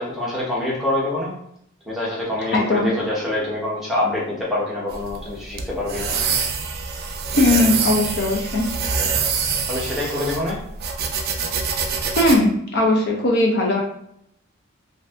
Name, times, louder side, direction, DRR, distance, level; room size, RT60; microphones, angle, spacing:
voice 1, 0.0-1.3 1.9-6.1 9.7-10.6, left 1 dB, ahead, -6 dB, 0.9 m, -25 dB
voice 2, 2.5-2.9 7.3-8.7 12.2-13.8, left 2 dB, 50° left, 0 dB, 0.5 m, -19 dB
sound 1, 4.9-12.4, right 5 dB, 50° right, 0.4 m, -25 dB
2.6 x 2.5 x 3.2 m, 0.72 s
head